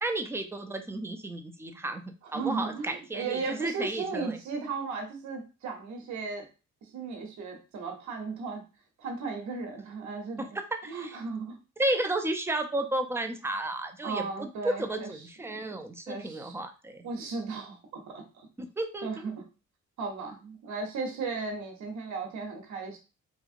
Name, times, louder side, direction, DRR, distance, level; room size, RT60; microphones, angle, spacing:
voice 1, 0.0-2.0 2.3-4.4 10.5-11.2 11.8-17.1 18.6-19.3, right 1 dB, 10° right, 7 dB, 0.4 m, -33 dB
voice 2, 2.3-6.4 6.9-8.6 9.0-10.5 10.9-11.6 14.0-15.1 15.5-15.7 16.1-16.5 17.0-18.2 19.0-19.4 20.0-23.0, right 4 dB, 70° right, 3 dB, 0.9 m, -35 dB
2.8 x 2.7 x 2.5 m, 0.32 s
cardioid pair, 90°, 30 cm